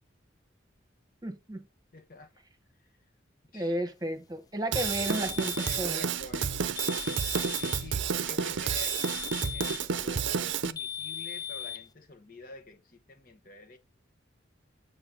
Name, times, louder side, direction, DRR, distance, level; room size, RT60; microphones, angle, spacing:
voice 1, 1.2-1.6 3.5-6.0, right 1 dB, 20° right, 1.1 m, -33 dB
voice 2, 1.9-2.3 3.5-3.8 5.6-6.6 7.5-13.8, left 3 dB, 45° left, 0.9 m, -48 dB
Drum kit / Drum, 4.7-10.7, right 6 dB, 75° right, 0.6 m, -30 dB
sound 1, 4.8-5.9 6.8-7.9 8.8-9.9 10.8-11.9, left 9 dB, 20° left, 0.3 m, -38 dB
7.9 x 3.9 x 4.0 m
head